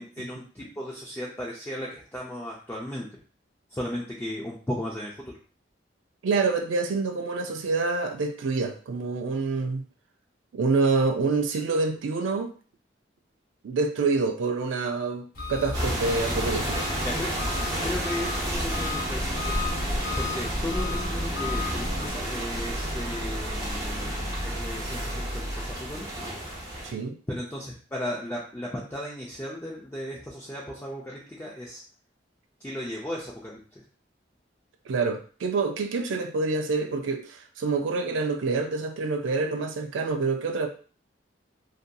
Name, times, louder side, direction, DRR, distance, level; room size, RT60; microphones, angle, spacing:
voice 1, 0.0-3.2 3.7-5.3 17.0-17.3 17.8-19.6 20.2-26.3 27.3-31.8 32.6-33.6, left 1 dB, 10° left, 0.4 m, -35 dB
voice 2, 6.2-9.8 10.5-12.5 13.6-16.8 26.8-27.2 34.9-40.7, right 4 dB, 85° right, 0.4 m, -27 dB
Engine, 15.3-22.1, left 2 dB, 55° left, 0.8 m, -33 dB
sound 1, 15.7-26.9, right 1 dB, 20° right, 0.7 m, -31 dB
sound 2, 19.6-25.7, equal, 85° left, 0.6 m, -36 dB
2.6 x 2.6 x 2.2 m
head